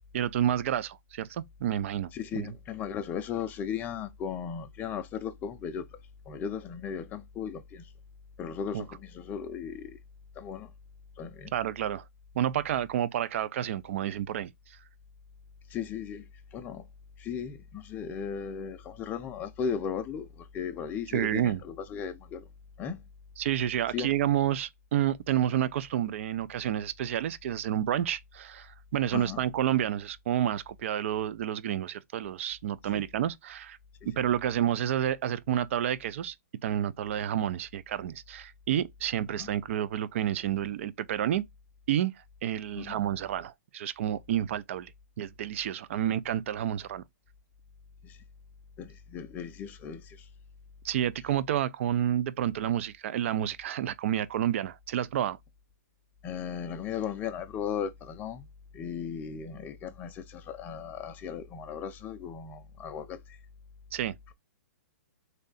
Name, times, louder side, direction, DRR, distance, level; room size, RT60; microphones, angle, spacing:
voice 1, 0.1-2.5 8.7-8.8 11.5-12.0 12.4-14.5 21.1-21.6 23.4-33.8 34.1-36.3 36.6-41.4 41.9-42.1 42.4-44.9 45.2-47.0 50.8-55.4 63.9-64.1, right 11 dB, 50° right, 0.4 m, -29 dB
voice 2, 2.1-5.9 6.3-7.9 8.4-10.0 10.4-10.7 11.2-11.5 15.7-16.9 17.2-22.5 22.8-23.1 23.9-24.1 29.1-29.4 32.9-33.1 39.3-39.5 42.8-43.0 48.0-48.2 48.8-50.3 56.2-58.5 58.7-63.4, left 7 dB, 20° left, 0.5 m, -36 dB
3.2 x 2.7 x 3.9 m
hypercardioid pair, 140°, 9 cm